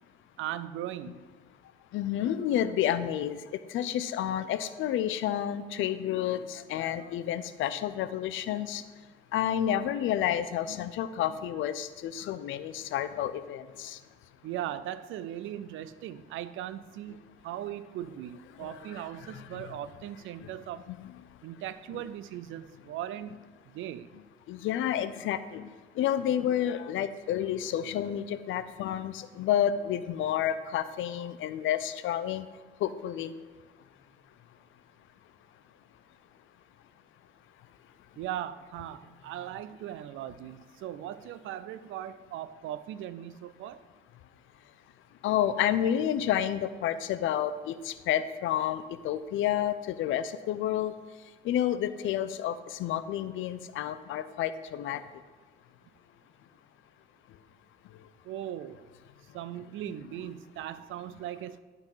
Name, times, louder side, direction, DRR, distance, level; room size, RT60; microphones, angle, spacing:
voice 1, 0.4-1.2 14.4-20.9 21.4-23.4 23.7-24.1 38.2-43.8 58.2-58.9 59.3-61.6, right 11 dB, 85° right, 15 dB, 0.4 m, -39 dB
voice 2, 1.9-3.4 3.7-8.8 9.3-14.0 18.6-19.0 19.3-19.7 20.4-20.5 20.9-21.1 21.9-22.0 24.5-32.5 32.8-33.3 45.2-50.9 51.4-55.0, left 10 dB, 80° left, 13 dB, 0.5 m, -30 dB
11.5 x 3.9 x 5.6 m, 1.4 s
cardioid pair, 90°, 20 cm